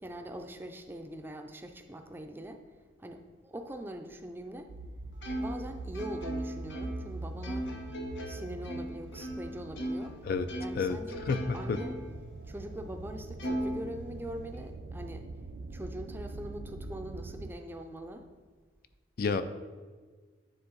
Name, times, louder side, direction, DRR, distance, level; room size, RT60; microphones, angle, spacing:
voice 1, 0.0-2.6 3.0-4.7 5.4-7.7 8.2-10.2 10.6-11.2 11.5-12.0 12.5-15.3 15.7-18.2, right 1 dB, 10° right, 5 dB, 0.4 m, -42 dB
sound 1, 4.7-17.5, right 3 dB, 75° right, 0.4 m, -43 dB
Plucked string instrument, 5.2-10.2 10.5-12.2 12.6-12.7 13.4-14.6, equal, 85° left, 1.0 m, -38 dB
voice 2, 11.3-11.8 19.2-19.4, left 4 dB, 55° left, 11 dB, 0.4 m, -29 dB
9.6 x 3.4 x 3.9 m, 1.5 s
head